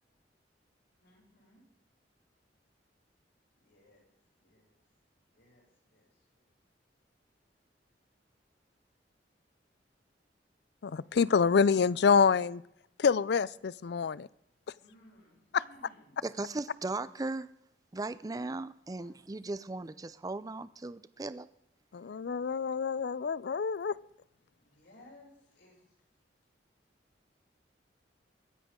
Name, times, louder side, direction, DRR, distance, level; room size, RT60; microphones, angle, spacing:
voice 1, 1.0-1.6 3.6-4.1 4.4-4.7 5.3-6.1 14.8-16.2 18.9-19.1 24.6-25.8, left 1 dB, 85° left, 6.6 m, -60 dB
voice 2, 10.8-12.6 13.0-14.3 15.5-15.6 21.9-23.9, left 6 dB, 65° left, 0.4 m, -27 dB
voice 3, 16.2-17.5 17.9-21.5, right 2 dB, 20° right, 0.4 m, -37 dB
23.0 x 10.0 x 3.7 m
head